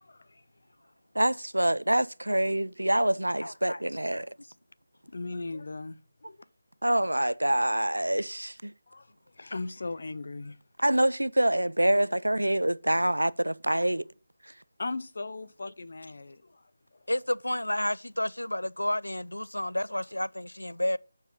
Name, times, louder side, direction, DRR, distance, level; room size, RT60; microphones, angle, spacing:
voice 1, 0.1-0.4 5.1-6.0 6.2-6.4 8.9-9.1 9.4-10.6 14.8-16.6, left 3 dB, 60° left, 0.7 m, -37 dB
voice 2, 1.2-4.3 6.8-8.7 10.8-14.1, right 1 dB, 90° right, 0.4 m, -26 dB
voice 3, 3.4-3.8 17.1-21.0, left 1 dB, 90° left, 0.3 m, -31 dB
9.0 x 4.7 x 5.6 m
figure-of-eight pair, 160°, 0 cm